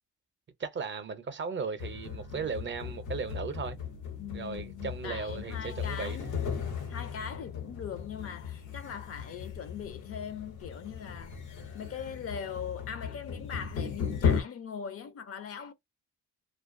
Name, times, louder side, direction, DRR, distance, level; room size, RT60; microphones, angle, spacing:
voice 1, 0.6-3.8 4.3-6.3, right 5 dB, 40° right, 0.6 m, -36 dB
sound 1, 1.8-14.4, left 7 dB, 85° left, 0.8 m, -36 dB
voice 2, 4.2-6.4 6.9-11.4 11.7-15.7, left 7 dB, 50° left, 0.5 m, -40 dB
2.3 x 2.3 x 2.5 m
cardioid pair, 90°, 30 cm